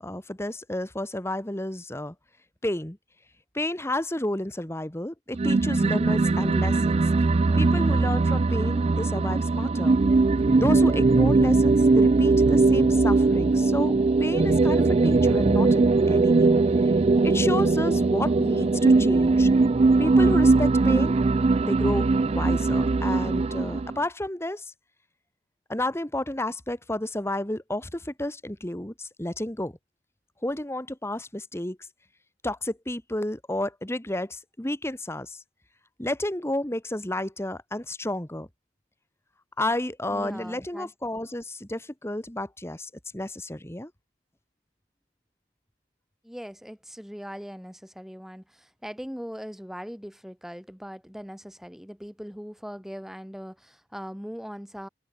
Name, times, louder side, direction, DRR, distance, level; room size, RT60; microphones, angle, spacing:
voice 1, 0.0-2.1 2.6-3.0 3.5-7.0 7.6-10.0 10.6-16.9 17.2-19.5 20.0-21.2 21.6-24.7 25.7-29.7 30.4-31.9 32.4-35.4 36.0-38.5 39.6-43.9, left 1 dB, 15° left, 1.8 m, -31 dB
sound 1, 5.3-24.0, right 3 dB, 35° right, 0.4 m, -20 dB
voice 2, 40.1-40.9 46.2-54.9, equal, ahead, 1.6 m, -40 dB
head